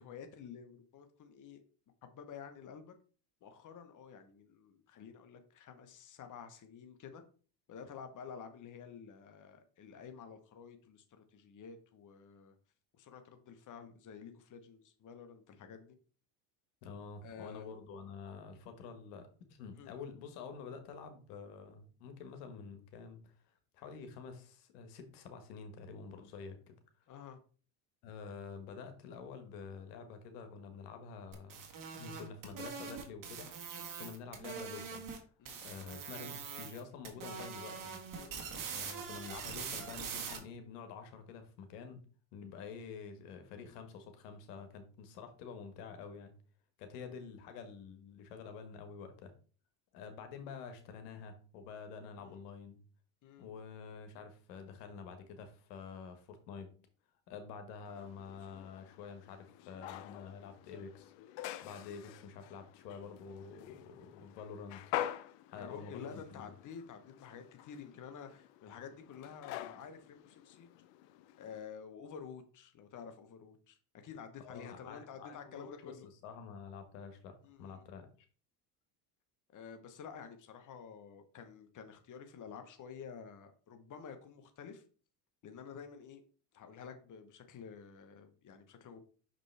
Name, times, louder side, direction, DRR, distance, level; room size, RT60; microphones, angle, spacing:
voice 1, 0.0-1.6 2.0-2.9 3.4-7.2 7.7-12.5 12.9-16.0 17.2-17.7 19.8-19.9 27.1-27.4 35.4-35.6 38.1-38.6 52.2-52.4 53.2-53.5 65.5-70.7 71.4-73.8 74.0-76.1 77.4-77.9 79.5-84.8 85.4-86.2 86.5-89.0, left 6 dB, 40° left, 7 dB, 1.1 m, -50 dB
voice 2, 16.8-23.3 23.7-26.8 28.0-31.6 31.9-33.5 34.0-35.1 35.6-38.0 38.7-42.0 42.3-46.3 46.8-49.3 49.9-52.8 53.4-56.7 57.3-61.1 61.6-64.8 65.5-66.5 74.4-75.9 76.2-78.1, left 5 dB, 90° left, 7 dB, 1.3 m, -48 dB
sound 1, 31.3-35.2 35.5-36.8 37.1-40.4, right 6 dB, 45° right, 1.8 m, -43 dB
sound 2, 57.9-71.6, left 12 dB, 70° left, 0.7 m, -46 dB
6.0 x 5.1 x 3.3 m, 0.39 s
supercardioid pair, 100°, 46 cm